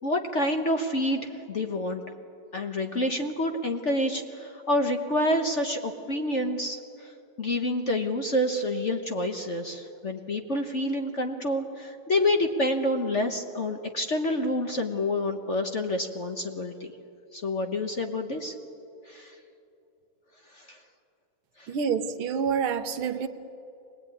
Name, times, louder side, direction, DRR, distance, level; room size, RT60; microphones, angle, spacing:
voice 1, 0.0-2.0 2.5-7.1 7.4-16.9 17.3-18.5 19.1-19.3 20.5-20.8 21.6-21.7, left 1 dB, 40° left, 4 dB, 1.2 m, -28 dB
voice 2, 21.7-23.3, right 6 dB, 75° right, 9 dB, 1.8 m, -27 dB
25.0 x 19.0 x 9.7 m, 2.7 s
omnidirectional pair, 2.4 m